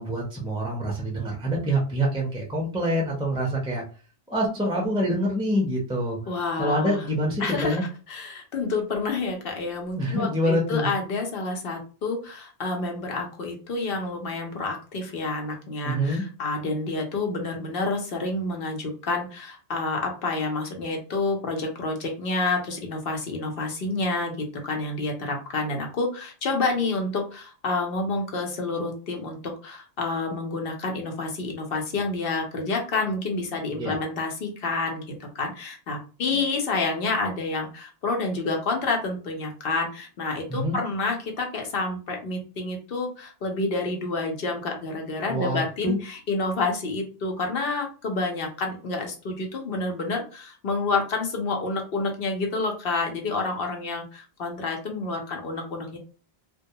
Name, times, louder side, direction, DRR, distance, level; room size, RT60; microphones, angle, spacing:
voice 1, 0.0-3.8 4.3-6.2 6.6-7.8 10.0-10.9 15.8-16.2 33.7-34.0 40.5-40.8 45.3-46.0, equal, 5° right, -2 dB, 0.4 m, -26 dB
voice 2, 6.3-7.0 7.4-7.8 8.1-56.0, left 3 dB, 65° left, 2 dB, 0.9 m, -29 dB
2.2 x 2.2 x 2.7 m, 0.37 s
omnidirectional pair, 1.1 m